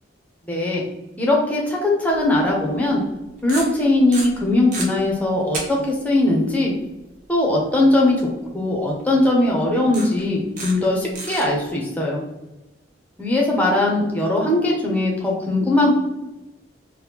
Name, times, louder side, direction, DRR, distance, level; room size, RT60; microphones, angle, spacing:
voice 1, 0.5-0.8 1.2-3.0 3.4-6.7 7.3-8.1 8.5-12.2 13.2-16.0, left 2 dB, 10° left, -2 dB, 0.6 m, -20 dB
sound 1, 2.1-2.2 3.4-3.8 4.1-4.8 5.5-5.6 5.9-6.0 9.0-9.1 9.9-10.2 10.6-10.9 11.1-11.4, right 3 dB, 45° right, 0.7 m, -30 dB
2.9 x 2.1 x 3.3 m, 0.99 s
head